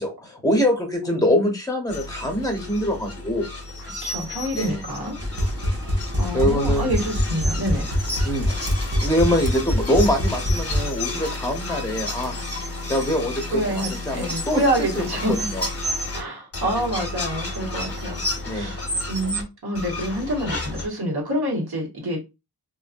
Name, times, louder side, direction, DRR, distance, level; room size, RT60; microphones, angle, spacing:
voice 1, 0.0-3.5 4.5-4.8 6.3-6.9 8.2-8.7 9.0-12.4 12.9-15.6 18.5-18.7, equal, 10° left, 1.0 m, -24 dB
voice 2, 1.0-1.5 3.8-5.2 6.2-7.9 13.5-15.3 16.1-18.8 19.1-22.2, equal, 70° right, 1.3 m, -27 dB
sound 1, 1.9-16.2 16.5-19.4 19.8-20.9, left 2 dB, 35° left, 1.0 m, -31 dB
sound 2, 5.2-10.8, equal, 35° right, 0.8 m, -24 dB
2.5 x 2.5 x 2.5 m
cardioid pair, 45°, 40 cm